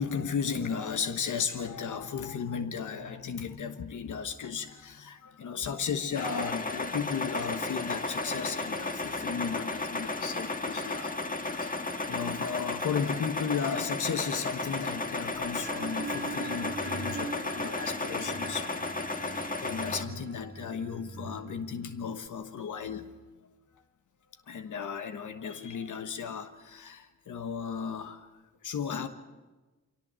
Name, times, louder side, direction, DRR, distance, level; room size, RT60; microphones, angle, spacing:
voice 1, 0.0-11.1 11.4-23.1 24.5-28.3 28.6-29.1, left 6 dB, 85° left, 1.3 m, -35 dB
sound 1, 6.1-20.0, left 3 dB, 30° left, 1.7 m, -34 dB
sound 2, 15.3-22.3, right 3 dB, 30° right, 1.0 m, -42 dB
23.5 x 17.5 x 7.6 m
cardioid pair, 60°, 30 cm